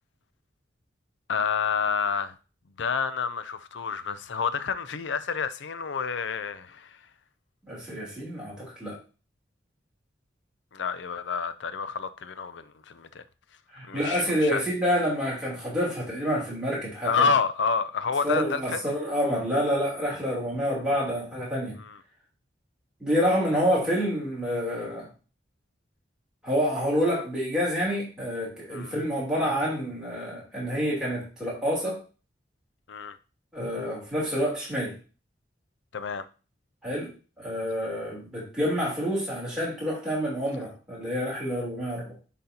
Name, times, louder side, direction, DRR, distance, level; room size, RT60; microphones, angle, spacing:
voice 1, 1.3-2.3 2.8-7.0 10.7-13.2 13.9-14.6 17.0-18.8 21.8-22.0 28.7-28.9 32.9-33.2 35.9-36.3, left 5 dB, 75° left, 0.5 m, -29 dB
voice 2, 7.7-9.0 13.7-17.3 18.2-21.8 23.0-25.1 26.4-32.0 33.5-34.9 36.8-37.1 37.4-42.2, equal, 5° right, 3.1 m, -28 dB
10.0 x 4.1 x 2.8 m
head